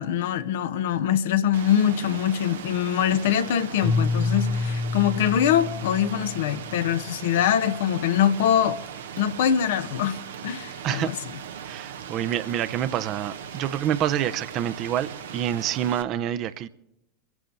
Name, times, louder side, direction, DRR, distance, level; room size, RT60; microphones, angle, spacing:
voice 1, 0.0-8.8 9.2-11.2, left 9 dB, 70° left, 0.8 m, -23 dB
Rain, 1.5-16.0, right 8 dB, 75° right, 1.0 m, -39 dB
Keyboard (musical), 3.8-6.9, left 3 dB, 25° left, 0.6 m, -28 dB
voice 2, 11.6-16.7, right 10 dB, 45° right, 0.8 m, -27 dB
24.5 x 11.0 x 3.9 m
hypercardioid pair, 85°, 0 cm